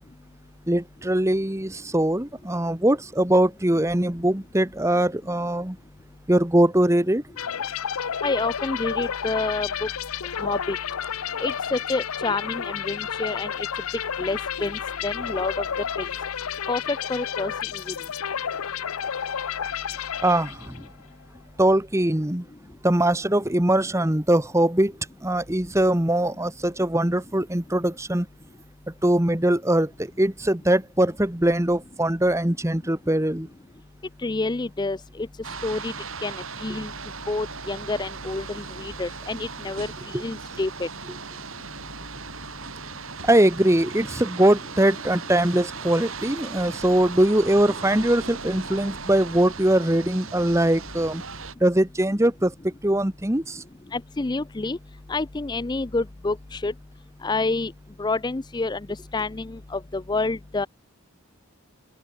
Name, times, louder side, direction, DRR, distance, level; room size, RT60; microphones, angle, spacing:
voice 1, 0.7-5.8 6.3-7.2 20.2-20.8 21.6-22.4 22.8-24.9 25.2-28.3 29.0-33.5 40.1-40.2 43.2-51.2 51.6-53.6, right 1 dB, 15° right, 1.3 m, -22 dB
sound 1, 7.4-20.9, left 8 dB, 90° left, 0.7 m, -31 dB
voice 2, 8.2-9.9 10.4-10.8 11.4-13.7 14.2-15.7 16.0-16.1 16.7-17.5 17.9-18.0 34.2-35.3 35.6-35.9 36.2-36.3 36.6-36.9 37.3-40.9 53.9-54.8 55.1-56.7 57.2-57.7 58.0-58.8 59.1-60.7, left 3 dB, 20° left, 0.4 m, -28 dB
sound 2, 35.4-51.5, right 5 dB, 70° right, 5.0 m, -38 dB
open air
head